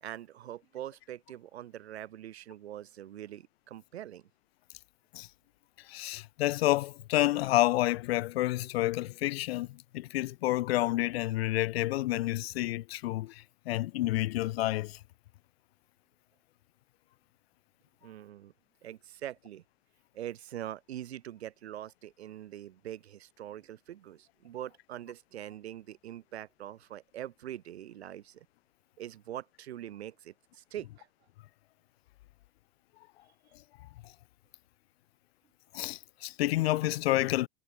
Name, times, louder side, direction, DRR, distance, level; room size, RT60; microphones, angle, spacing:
voice 1, 0.0-4.3 18.0-18.5 18.8-19.6 20.1-28.5 29.0-31.1, right 12 dB, 80° right, 1.5 m, -43 dB
voice 2, 5.9-15.0 35.7-37.5, left 17 dB, 70° left, 0.6 m, -29 dB
hypercardioid pair, 110°, 32 cm